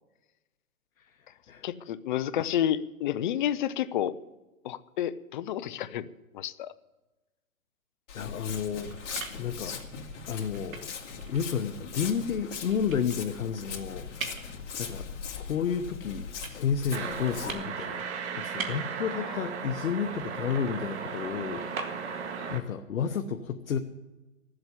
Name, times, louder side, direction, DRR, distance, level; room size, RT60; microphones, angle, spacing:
voice 1, 1.6-4.1 4.6-6.1 6.3-6.7 19.2-19.4 22.4-22.5, left 11 dB, 35° left, 15 dB, 0.6 m, -30 dB
voice 2, 8.1-8.9 9.4-9.8 10.3-10.9 11.3-14.5 14.8-15.1 15.4-22.0 22.5-23.8, left 7 dB, 80° left, 5 dB, 1.0 m, -31 dB
Walk footsteps, 8.1-17.5, left 6 dB, 60° left, 2.4 m, -40 dB
sound 1, 8.5-22.4, right 5 dB, 80° right, 2.1 m, -45 dB
sound 2, 16.9-22.6, right 6 dB, 55° right, 1.8 m, -36 dB
14.0 x 7.9 x 9.8 m, 1.1 s
hypercardioid pair, 145°, 40 cm